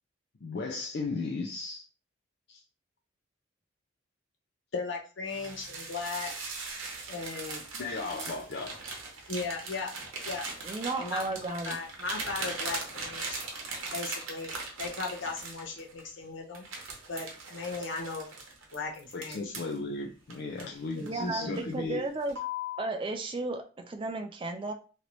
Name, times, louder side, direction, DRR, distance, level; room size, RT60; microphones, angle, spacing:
voice 1, 0.4-1.8 2.5-2.6 7.7-8.8 19.1-22.0, left 3 dB, 55° left, 1 dB, 0.4 m, -35 dB
voice 2, 4.7-6.3 7.1-7.6 9.3-9.9 10.2-10.4 11.0-13.4 13.9-14.5 14.8-16.6 17.1-18.3 18.7-19.5 21.0-21.1 21.4-21.5, left 4 dB, 70° left, 0 dB, 0.9 m, -37 dB
sound 1, 5.3-16.1 16.5-19.8 20.3-21.2 21.6-21.8 22.3-22.9, right 2 dB, 85° right, 0.9 m, -39 dB
voice 3, 10.6-11.8 21.0-22.4 22.8-24.7, right 2 dB, 25° right, 5 dB, 0.3 m, -34 dB
3.0 x 2.5 x 3.0 m, 0.37 s
head